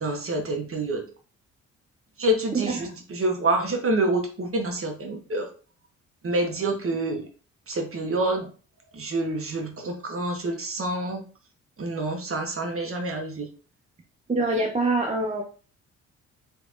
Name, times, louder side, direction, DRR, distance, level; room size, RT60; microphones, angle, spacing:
voice 1, 0.0-1.0 2.2-5.5 6.2-7.3 7.7-8.5 8.9-11.2 11.8-13.5, right 2 dB, 35° right, 3 dB, 1.3 m, -27 dB
voice 2, 14.3-15.4, right 2 dB, 20° right, 1 dB, 0.7 m, -24 dB
3.4 x 3.3 x 2.5 m, 0.38 s
hypercardioid pair, 45°, 37 cm